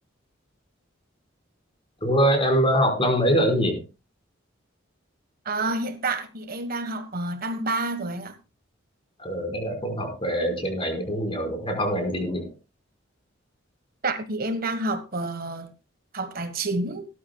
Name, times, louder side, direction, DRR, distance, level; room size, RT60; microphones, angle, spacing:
voice 1, 2.0-3.8 9.2-12.5, equal, 25° left, 5.0 m, -23 dB
voice 2, 5.4-8.4 14.0-15.7 16.1-17.1, right 2 dB, 50° right, 1.5 m, -29 dB
18.0 x 13.0 x 2.3 m
head